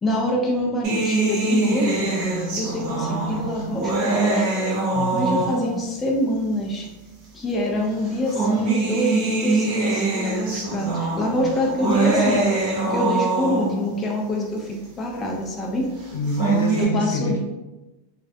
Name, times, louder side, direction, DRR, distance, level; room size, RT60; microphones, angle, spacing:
voice 1, 0.0-2.1 2.6-4.5 5.1-6.9 7.3-15.9 16.8-17.4, left 1 dB, 15° left, -1 dB, 0.3 m, -25 dB
sound 1, 0.8-5.9 6.8-6.9 8.0-13.9 16.1-16.8, right 3 dB, 50° right, 0.7 m, -23 dB
voice 2, 4.9-5.5 16.1-17.4, left 2 dB, 80° left, -1 dB, 0.7 m, -26 dB
2.3 x 2.1 x 2.6 m, 1.1 s
supercardioid pair, 140°, 0 cm